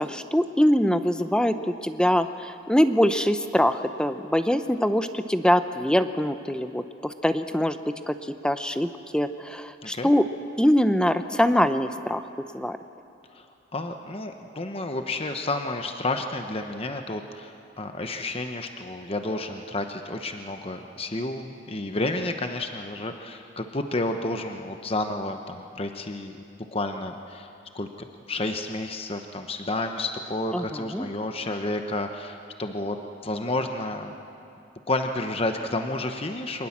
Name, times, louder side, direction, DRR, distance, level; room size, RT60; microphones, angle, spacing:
voice 1, 0.0-7.8 8.1-10.2 10.6-12.3 12.5-12.8 30.5-31.1, equal, 5° left, 9 dB, 0.7 m, -23 dB
voice 2, 13.7-26.4 26.7-27.5 27.7-33.0 33.2-34.1 34.9-36.7, left 2 dB, 30° left, 5 dB, 1.0 m, -31 dB
25.0 x 19.5 x 7.4 m, 2.6 s
head